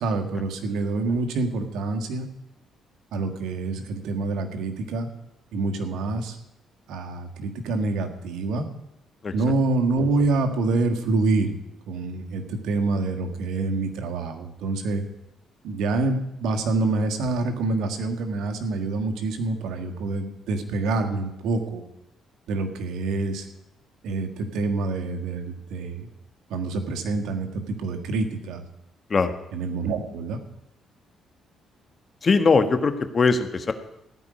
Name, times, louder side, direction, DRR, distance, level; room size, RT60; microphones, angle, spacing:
voice 1, 0.0-2.3 3.1-5.1 5.5-6.4 6.9-8.6 9.3-11.5 11.9-15.0 15.6-21.8 22.5-23.5 24.0-26.1 26.5-28.6 29.5-30.4, right 3 dB, 80° right, 5 dB, 1.6 m, -26 dB
voice 2, 32.2-33.7, left 4 dB, 40° left, 8 dB, 1.4 m, -20 dB
15.5 x 5.2 x 9.6 m, 0.85 s
cardioid pair, 85°, 0 cm